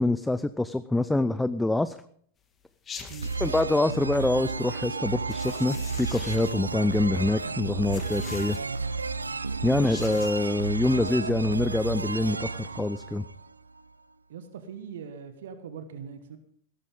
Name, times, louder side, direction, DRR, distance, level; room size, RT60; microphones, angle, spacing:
voice 1, 0.0-2.0 3.4-8.6 9.6-13.2, left 2 dB, 5° left, 14 dB, 0.5 m, -25 dB
sound 1, 2.9-3.6 5.3-6.7 7.9-8.9 9.7-10.6, left 5 dB, 25° left, 2.0 m, -43 dB
sound 2, 3.2-13.8, right 4 dB, 80° right, 0.5 m, -32 dB
voice 2, 14.3-16.4, right 7 dB, 60° right, 9 dB, 1.3 m, -41 dB
16.5 x 13.5 x 3.8 m, 0.63 s
figure-of-eight pair, 90°, 0 cm